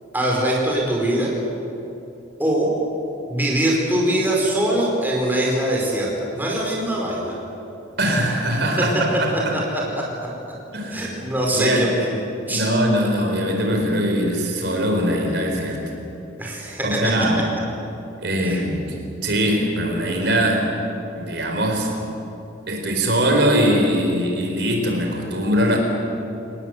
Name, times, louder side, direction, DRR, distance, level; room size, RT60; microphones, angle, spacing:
voice 1, 0.1-1.3 2.4-2.7 3.3-7.3 9.9-10.0 10.9-12.1 12.5-12.7 16.4-16.8, right 1 dB, 10° right, -3 dB, 4.8 m, -22 dB
voice 2, 8.0-9.6 10.7-11.9 12.5-15.8 16.8-17.4 18.2-20.7 21.2-21.9 22.7-25.8, equal, 60° right, 2 dB, 4.3 m, -21 dB
28.5 x 19.0 x 8.0 m, 2.8 s
head